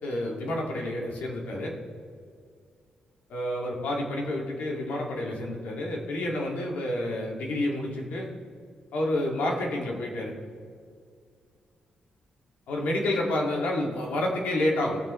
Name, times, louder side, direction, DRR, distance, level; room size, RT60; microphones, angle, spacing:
voice 1, 0.0-1.7 3.3-8.3 8.9-10.3 12.7-15.0, left 1 dB, 85° left, -1 dB, 2.2 m, -29 dB
17.5 x 6.9 x 3.2 m, 2.1 s
cardioid pair, 125°, 3 cm